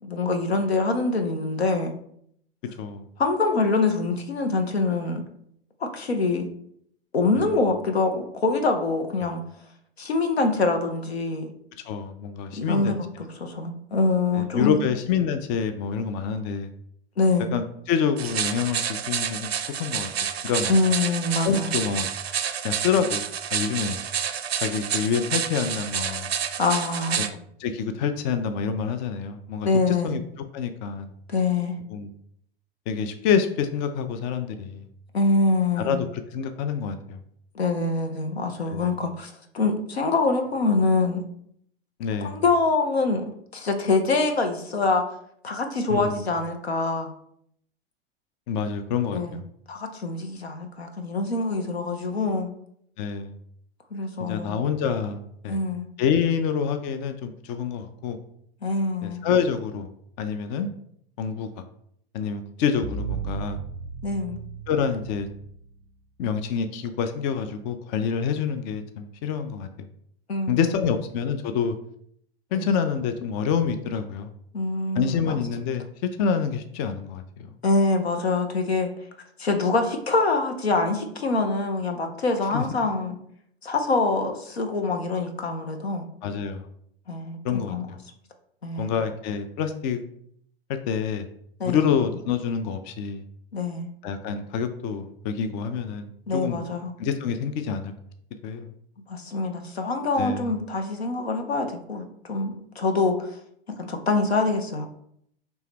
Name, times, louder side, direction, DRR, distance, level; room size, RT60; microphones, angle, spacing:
voice 1, 0.0-1.9 3.2-5.3 5.8-6.5 7.1-9.4 10.0-11.5 12.5-14.8 17.2-17.5 20.7-21.7 26.6-27.2 29.6-30.2 31.3-31.8 35.1-36.0 37.5-41.2 42.2-45.0 45.4-47.1 49.1-49.4 49.7-52.5 53.9-54.5 55.5-55.9 58.6-59.2 64.0-64.4 70.3-70.9 72.5-72.7 74.5-75.3 77.6-78.9 79.4-83.2 83.6-86.1 87.1-87.9 88.6-89.0 91.6-91.8 93.5-93.9 96.3-96.9 99.1-103.4 103.7-104.9, left 3 dB, 90° left, 5 dB, 0.8 m, -25 dB
voice 2, 11.8-13.0 14.3-16.7 17.5-19.5 19.8-20.1 20.4-20.7 21.4-22.1 22.6-23.2 23.5-24.0 24.6-26.3 27.2-27.3 27.6-30.2 30.5-31.1 31.9-32.1 32.9-34.8 35.8-37.2 38.7-38.9 42.0-42.4 45.9-46.2 48.5-49.4 53.0-53.4 54.2-55.6 56.0-58.2 59.0-59.9 60.2-60.7 61.2-61.6 62.1-63.6 64.7-65.3 66.2-69.7 70.5-71.8 72.5-74.3 74.9-77.6 82.5-82.6 86.2-86.7 87.4-88.0 88.8-90.0 90.9-91.3 91.6-93.2 94.0-96.6 97.0-97.9 98.4-98.7 100.2-100.5, left 7 dB, 45° left, 8 dB, 0.5 m, -27 dB
sound 1, 18.2-27.3, right 8 dB, 85° right, 0.5 m, -29 dB
sound 2, 62.8-65.9, right 7 dB, 25° right, 0.5 m, -35 dB
4.4 x 3.0 x 3.5 m, 0.68 s
hypercardioid pair, 95°, 31 cm